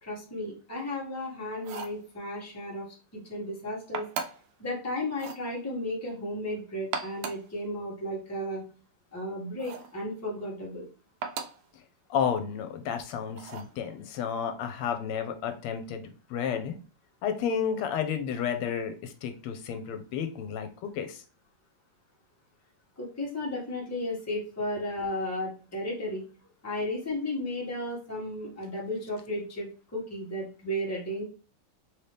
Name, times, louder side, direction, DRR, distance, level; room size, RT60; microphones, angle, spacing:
voice 1, 0.0-2.9 3.1-4.0 4.6-8.6 9.1-10.8 23.0-26.2 26.6-31.2, left 1 dB, 10° left, -4 dB, 1.0 m, -34 dB
sound 1, 1.6-2.0 3.9-4.5 5.1-5.5 6.8-7.5 9.6-10.0 11.2-11.7 13.4-13.8, right 6 dB, 85° right, 1.5 m, -37 dB
voice 2, 12.1-16.8 17.2-21.2, left 7 dB, 80° left, 7 dB, 1.5 m, -31 dB
3.9 x 2.8 x 3.2 m, 0.37 s
omnidirectional pair, 2.4 m